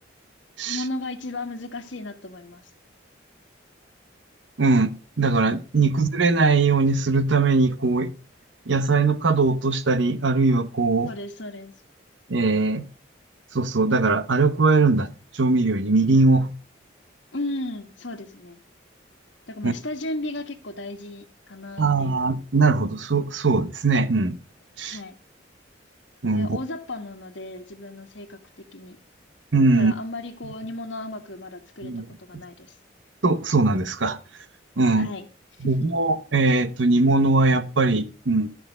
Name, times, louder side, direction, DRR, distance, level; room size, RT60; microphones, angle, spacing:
voice 1, 0.6-2.6 5.8-6.0 11.1-11.7 17.3-18.6 19.5-22.3 24.8-25.1 26.3-29.0 29.8-31.9 32.2-32.7 34.9-35.3 35.6-35.7, left 2 dB, 80° left, 1.5 m, -35 dB
voice 2, 4.6-8.1 8.7-11.1 12.3-12.9 13.5-15.1 15.3-16.5 19.6-19.7 21.8-24.4 24.8-25.0 26.2-26.6 29.5-29.9 31.8-32.0 33.2-34.2 34.8-35.1 35.6-38.5, right 3 dB, 80° right, 1.0 m, -20 dB
13.0 x 5.9 x 5.2 m
head